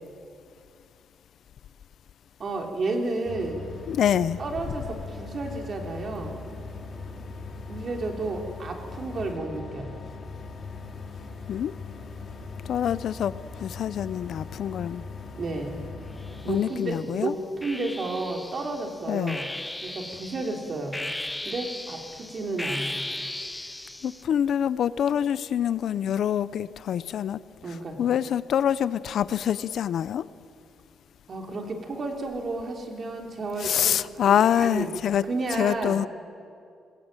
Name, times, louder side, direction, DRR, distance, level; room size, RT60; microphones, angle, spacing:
voice 1, 2.4-3.7 4.4-6.4 7.7-10.0 15.4-15.8 16.4-19.5 19.8-21.0 21.4-23.0 27.6-28.0 31.3-34.9 35.2-36.1, right 2 dB, 40° right, 2 dB, 3.2 m, -32 dB
sound 1, 3.2-16.6, left 4 dB, 40° left, 3.6 m, -40 dB
voice 2, 3.9-4.4 11.5-11.7 12.6-15.0 16.5-17.3 19.1-19.4 24.0-27.4 28.0-30.3 33.6-35.2 35.6-36.1, left 9 dB, 60° left, 16 dB, 0.6 m, -25 dB
sound 2, 16.2-17.0 17.6-24.2, left 1 dB, 10° left, 0.5 m, -37 dB
21.5 x 20.5 x 9.0 m, 2.3 s
cardioid pair, 155°, 0 cm